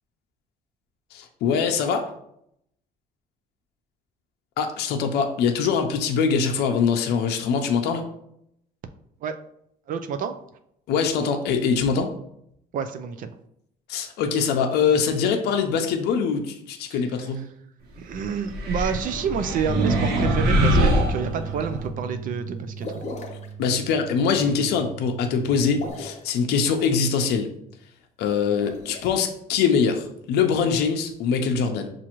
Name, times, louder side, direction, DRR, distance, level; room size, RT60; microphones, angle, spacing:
voice 1, 1.1-2.1 4.6-8.0 10.9-12.1 13.9-17.4 23.6-27.5 28.2-31.9, left 6 dB, 75° left, 4 dB, 0.5 m, -23 dB
voice 2, 9.9-10.4 12.7-13.3 16.9-17.0 18.0-23.0, right 6 dB, 55° right, 9 dB, 0.4 m, -29 dB
sound 1, 18.5-21.8, equal, 75° right, 1.0 m, -23 dB
sound 2, 19.7-25.9, right 3 dB, 20° right, 1.2 m, -34 dB
sound 3, 22.8-23.5 25.7-26.3 28.5-29.1, left 2 dB, 45° left, 0.9 m, -36 dB
6.0 x 2.5 x 2.9 m, 0.75 s
cardioid pair, 110°, 17 cm